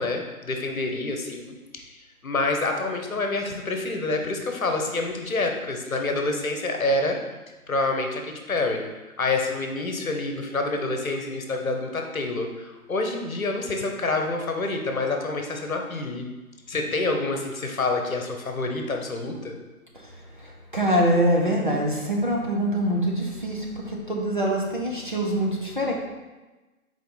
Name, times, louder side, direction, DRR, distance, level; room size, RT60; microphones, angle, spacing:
voice 1, 0.0-1.9 2.2-7.2 7.7-8.8 9.2-16.3 16.7-19.6, left 2 dB, 65° left, 3 dB, 1.1 m, -27 dB
voice 2, 20.4-25.9, equal, 35° right, -2 dB, 0.7 m, -24 dB
5.2 x 4.4 x 4.1 m, 1.2 s
figure-of-eight pair, 175°, 45 cm